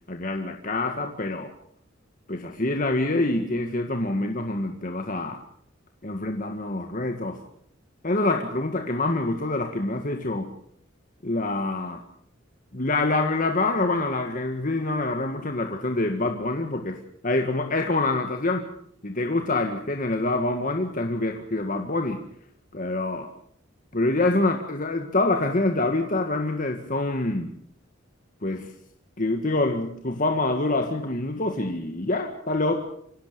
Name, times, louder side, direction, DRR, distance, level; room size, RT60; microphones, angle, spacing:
voice 1, 0.1-1.5 2.3-5.4 6.0-7.4 8.0-10.5 11.2-12.0 12.7-17.0 17.2-18.7 19.0-22.2 22.7-23.3 23.9-27.5 28.4-28.7 29.2-32.8, left 2 dB, 40° left, 4 dB, 1.9 m, -26 dB
26.5 x 17.0 x 6.9 m, 0.66 s
head